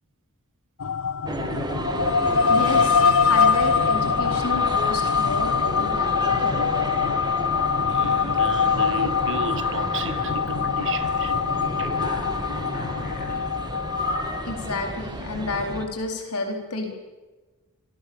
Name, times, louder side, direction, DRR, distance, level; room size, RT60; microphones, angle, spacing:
sound 1, 0.8-14.7, left 6 dB, 65° left, 0.8 m, -23 dB
sound 2, 1.2-15.9, right 1 dB, 20° right, 2.1 m, -33 dB
voice 1, 2.5-6.7 14.5-16.9, left 2 dB, 85° left, 4.2 m, -30 dB
voice 2, 7.8-11.3 11.8-11.9, right 3 dB, 60° right, 1.4 m, -34 dB
Alarm, 9.2-10.3 10.8-11.3 11.8-13.4 13.9-14.4, left 2 dB, 40° left, 7.4 m, -35 dB
27.0 x 21.5 x 7.2 m
head